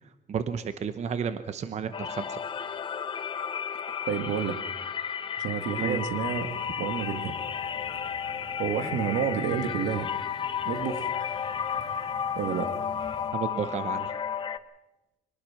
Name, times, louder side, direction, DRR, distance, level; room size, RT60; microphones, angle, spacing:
voice 1, 0.3-2.4 5.8-6.0 13.3-14.2, right 7 dB, 35° right, 11 dB, 0.9 m, -32 dB
sound 1, 1.9-14.6, left 8 dB, 25° left, 0.9 m, -33 dB
voice 2, 4.0-4.6 5.4-7.3 8.6-10.1 10.6-11.1 12.4-12.7, right 7 dB, 70° right, 8 dB, 2.0 m, -30 dB
sound 2, 5.8-13.3, equal, 20° right, 7.3 m, -51 dB
24.5 x 19.0 x 5.9 m, 1.0 s
cardioid pair, 165°, 20 cm